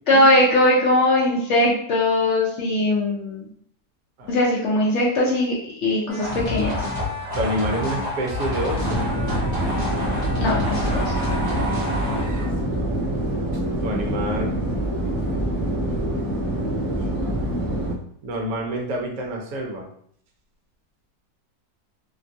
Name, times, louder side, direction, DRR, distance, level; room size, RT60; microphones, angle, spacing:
voice 1, 0.1-3.4 4.3-5.5 5.8-6.8 10.4-11.1, left 1 dB, 75° left, -4 dB, 0.6 m, -20 dB
sound 1, 6.1-12.6, left 1 dB, 40° right, 0.6 m, -28 dB
voice 2, 7.0-9.1 13.8-14.6 18.2-19.9, right 1 dB, 65° right, -1 dB, 1.0 m, -28 dB
sound 2, 8.8-17.9, right 1 dB, 30° left, 0.7 m, -25 dB
2.9 x 2.2 x 2.6 m, 0.65 s
omnidirectional pair, 1.8 m